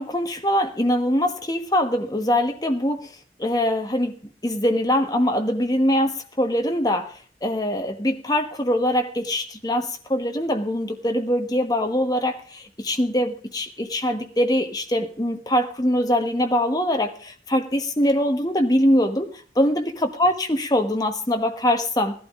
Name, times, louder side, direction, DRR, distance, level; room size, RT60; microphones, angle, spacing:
voice 1, 0.0-3.1 3.4-4.1 4.4-7.1 7.4-19.3 19.5-22.2, equal, 20° left, 5 dB, 1.3 m, -23 dB
16.5 x 11.5 x 3.6 m, 0.44 s
head